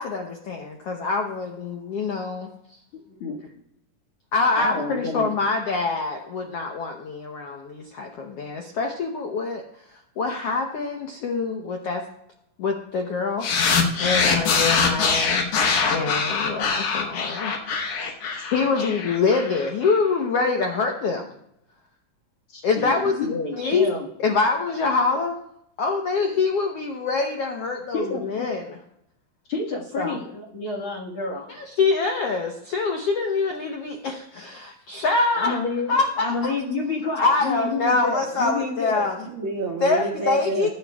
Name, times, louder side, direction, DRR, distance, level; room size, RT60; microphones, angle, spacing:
voice 1, 0.0-2.5 4.3-9.6 10.2-12.0 12.6-13.7 14.0-15.4 15.8-17.5 18.5-21.3 22.6-23.2 23.5-23.9 24.2-25.4 25.8-28.8 30.0-30.2 31.5-35.6 35.9-36.5 37.2-39.3 39.8-40.7, left 4 dB, 85° left, 2 dB, 1.3 m, -25 dB
voice 2, 4.6-5.3 22.5-24.1 27.9-28.3 29.5-31.5 35.4-39.1, left 3 dB, 45° left, -1 dB, 1.9 m, -29 dB
sound 1, 13.4-19.9, left 5 dB, 65° left, 2.5 m, -23 dB
voice 3, 17.6-18.5 39.3-40.7, right 5 dB, 85° right, 0 dB, 1.0 m, -31 dB
21.0 x 9.4 x 2.3 m, 0.76 s
omnidirectional pair, 4.1 m